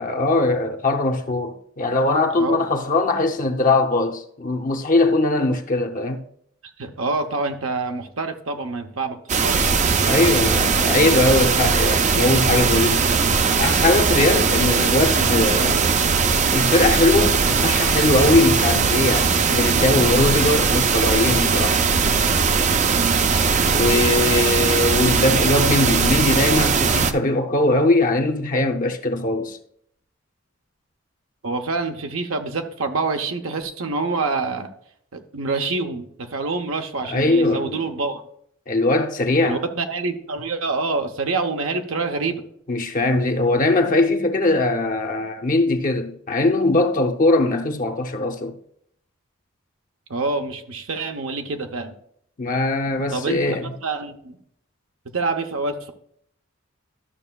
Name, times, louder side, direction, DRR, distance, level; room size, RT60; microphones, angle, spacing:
voice 1, 0.0-6.2 10.1-13.1 13.6-16.0 16.5-21.8 23.7-29.6 37.1-37.8 38.7-39.6 42.7-48.6 52.4-53.7, left 2 dB, 40° left, 0.7 m, -20 dB
voice 2, 6.8-9.7 23.0-23.3 31.4-34.7 35.1-38.2 39.4-42.4 50.1-51.9 53.1-54.4 55.1-55.9, right 3 dB, 70° right, 0.7 m, -26 dB
sound 1, 9.3-27.1, right 5 dB, 35° right, 0.4 m, -19 dB
12.5 x 6.5 x 2.3 m
head